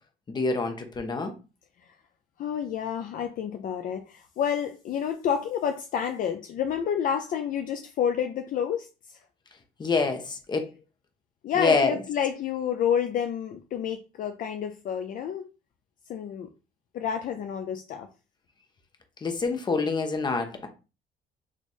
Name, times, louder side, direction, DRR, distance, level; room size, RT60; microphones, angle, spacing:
voice 1, 0.3-1.3 9.8-10.7 11.6-11.9 19.2-20.7, left 4 dB, 25° left, 0.8 m, -26 dB
voice 2, 2.4-9.2 11.4-15.5 16.1-16.5 16.9-18.1, left 8 dB, 55° left, 0.4 m, -29 dB
3.1 x 2.4 x 4.0 m
cardioid pair, 110°, 17 cm